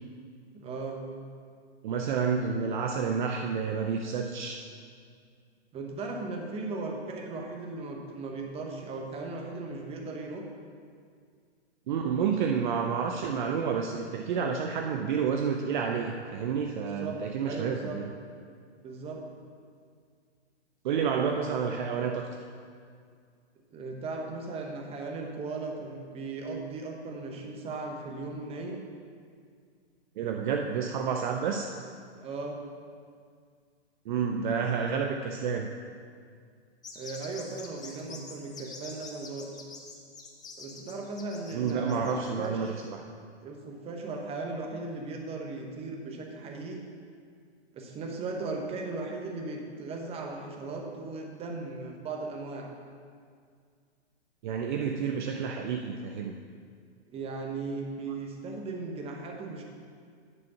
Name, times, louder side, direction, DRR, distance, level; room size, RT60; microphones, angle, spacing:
voice 1, 0.5-1.0 5.7-10.5 17.0-18.0 18.8-19.2 23.7-28.9 32.2-32.6 36.9-39.5 40.6-42.8 43.4-46.8 47.7-52.7 57.1-59.6, right 3 dB, 15° right, 2 dB, 1.0 m, -37 dB
voice 2, 1.8-4.6 11.9-18.1 20.8-22.3 30.2-31.7 34.1-35.7 41.5-43.0 54.4-56.3, right 6 dB, 45° right, 3 dB, 0.6 m, -29 dB
sound 1, 36.8-42.9, left 4 dB, 10° left, 0.8 m, -46 dB
9.8 x 5.0 x 5.7 m, 2.1 s
hypercardioid pair, 125°, 34 cm